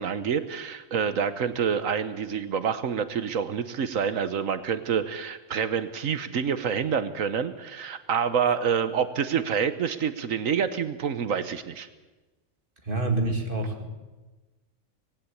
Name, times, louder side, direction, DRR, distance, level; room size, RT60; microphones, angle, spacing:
voice 1, 0.0-11.9, right 7 dB, 75° right, 12 dB, 1.4 m, -27 dB
voice 2, 12.8-13.9, right 2 dB, 40° right, 3 dB, 2.6 m, -27 dB
19.5 x 16.0 x 8.4 m, 1.2 s
omnidirectional pair, 1.4 m